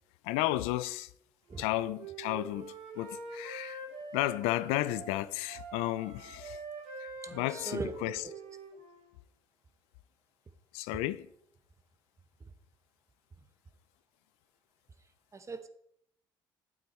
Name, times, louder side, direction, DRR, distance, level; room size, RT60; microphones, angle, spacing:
voice 1, 0.2-1.1 1.6-3.8 4.1-6.6 7.0-8.2 10.7-11.3, left 16 dB, 90° left, 0.4 m, -33 dB
Wind instrument woodwind instrument, 1.5-5.1 5.5-9.1, right 3 dB, 80° right, 2.7 m, -45 dB
voice 2, 7.2-7.9 15.3-15.7, right 3 dB, 30° right, 1.0 m, -39 dB
9.1 x 7.9 x 4.3 m
supercardioid pair, 75°, 10 cm